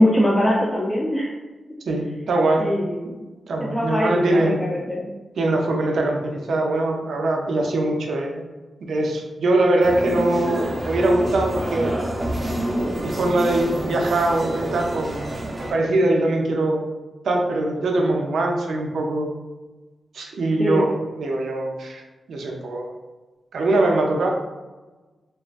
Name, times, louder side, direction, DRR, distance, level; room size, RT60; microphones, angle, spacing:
voice 1, 0.0-1.4 2.6-3.3 3.7-5.1 13.0-13.1 20.6-20.8, left 1 dB, 15° left, -4 dB, 0.4 m, -21 dB
voice 2, 1.9-2.7 3.5-4.6 5.4-8.4 8.9-12.0 13.0-15.3 15.7-16.8 17.2-19.3 20.1-22.0 22.3-22.9 23.5-24.3, right 2 dB, 85° right, 1 dB, 0.4 m, -22 dB
sound 1, 9.8-15.7, right 1 dB, 35° right, 0.6 m, -28 dB
2.3 x 2.3 x 2.4 m, 1.2 s
cardioid pair, 65°, 0 cm